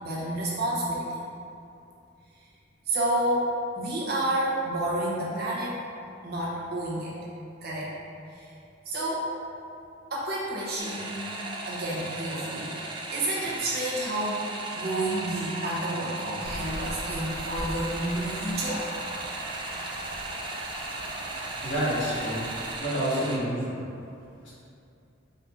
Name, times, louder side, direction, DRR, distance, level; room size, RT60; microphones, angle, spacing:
voice 1, 0.0-1.1 2.9-3.5 3.8-5.8 6.2-7.1 7.6-7.9 8.3-8.5 8.9-9.3 10.1-11.4 11.7-12.8 13.1-14.4 14.8-18.8, right 1 dB, 50° right, -6 dB, 0.9 m, -30 dB
sound 1, 10.8-23.4, right 2 dB, 25° right, 0.3 m, -36 dB
sound 2, 16.4-22.8, equal, 90° right, 0.7 m, -40 dB
voice 2, 21.6-22.5 22.8-23.8 24.4-24.5, equal, 75° left, -8 dB, 1.4 m, -28 dB
4.3 x 2.6 x 3.7 m, 2.6 s
head